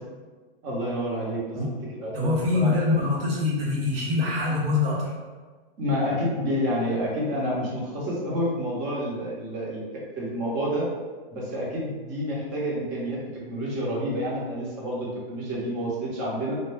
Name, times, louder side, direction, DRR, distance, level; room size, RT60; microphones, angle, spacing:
voice 1, 0.6-1.6 1.9-2.1 2.5-2.8 5.8-10.9 11.3-13.2 13.4-16.6, equal, 40° right, -5 dB, 0.9 m, -29 dB
voice 2, 2.1-5.1, left 3 dB, 70° right, -3 dB, 1.0 m, -24 dB
2.3 x 2.0 x 3.4 m, 1.4 s
hypercardioid pair, 135°, 30 cm